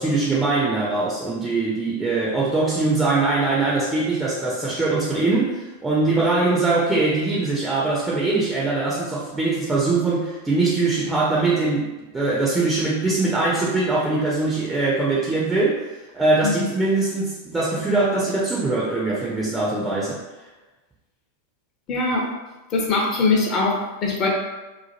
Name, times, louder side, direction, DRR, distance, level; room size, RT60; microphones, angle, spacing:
voice 1, 0.0-20.2, right 3 dB, 10° right, -5 dB, 0.5 m, -22 dB
voice 2, 21.9-22.3 22.7-24.3, left 3 dB, 35° left, -2 dB, 0.7 m, -22 dB
2.9 x 2.1 x 2.9 m, 1.1 s
figure-of-eight pair, 90°, 0 cm